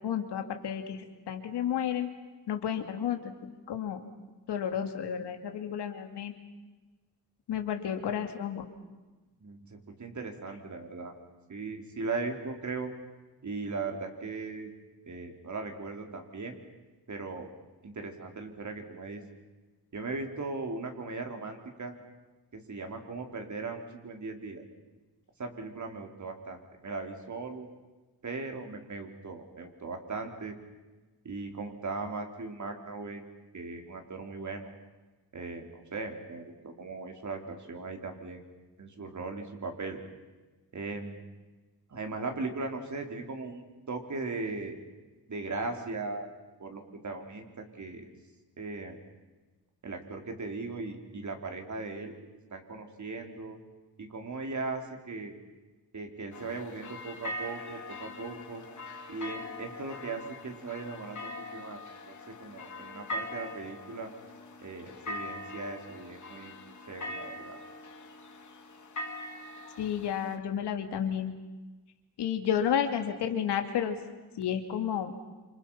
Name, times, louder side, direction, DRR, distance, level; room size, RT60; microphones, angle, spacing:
voice 1, 0.0-2.1 2.5-3.3 3.7-4.0 4.5-6.3 7.5-8.6 69.8-71.3 72.2-74.0 74.4-75.1, left 9 dB, 90° left, 5 dB, 2.7 m, -31 dB
voice 2, 9.4-11.1 11.5-12.9 13.4-14.7 15.1-16.6 17.1-17.5 17.8-19.2 19.9-21.9 22.5-24.6 25.4-27.7 28.2-30.5 31.2-33.2 33.5-34.7 35.3-38.4 38.8-40.0 40.7-41.2 41.9-44.8 45.3-46.3 46.6-48.1 48.6-49.0 49.8-52.1 52.5-53.6 54.0-55.3 55.9-58.6 59.1-61.8 62.1-64.1 64.6-67.6, right 3 dB, 45° right, 3 dB, 4.4 m, -38 dB
sound 1, 56.3-70.4, left 1 dB, 45° left, 3.0 m, -42 dB
28.5 x 27.0 x 5.8 m, 1.2 s
cardioid pair, 85°, 40 cm